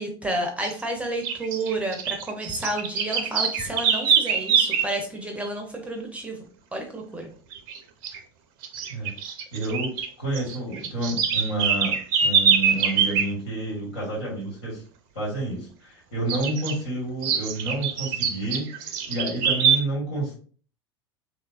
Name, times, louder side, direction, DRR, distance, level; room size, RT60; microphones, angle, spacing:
voice 1, 0.0-6.5 6.7-7.3 8.9-9.0, right 1 dB, 10° right, 3 dB, 0.6 m, -31 dB
sound 1, 0.6-0.8 1.2-4.9 7.5-8.2 8.6-10.1 10.3-13.3 16.3-16.7 17.2-19.8, right 7 dB, 55° right, 0.4 m, -24 dB
voice 2, 9.5-9.9 10.2-11.9 12.2-14.8 15.1-20.3, right 2 dB, 75° left, -4 dB, 1.4 m, -29 dB
3.0 x 2.2 x 2.4 m, 0.43 s
figure-of-eight pair, 75°, 14 cm